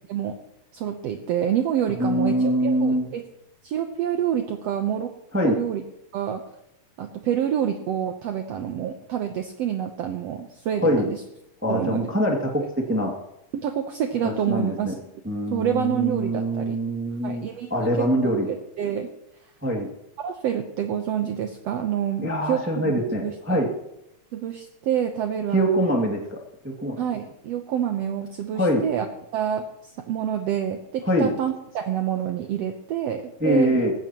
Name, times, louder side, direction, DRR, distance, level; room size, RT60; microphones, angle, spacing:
voice 1, 0.7-3.3 3.6-5.1 5.4-5.8 6.1-6.4 7.0-11.2 11.7-12.1 12.6-12.7 13.5-15.0 15.5-16.8 17.2-19.1 20.2-23.6 24.3-25.9 27.0-29.1 29.3-33.9, right 9 dB, 75° right, 5 dB, 1.5 m, -27 dB
voice 2, 2.0-3.1 5.3-5.6 10.8-11.0 11.6-13.1 14.2-14.9 15.2-17.4 17.7-18.5 19.6-19.9 22.2-23.7 25.5-26.4 26.6-26.9 28.5-28.8 31.0-31.3 33.4-33.9, equal, 5° right, 0 dB, 1.4 m, -23 dB
19.0 x 16.0 x 3.0 m, 0.83 s
omnidirectional pair, 4.0 m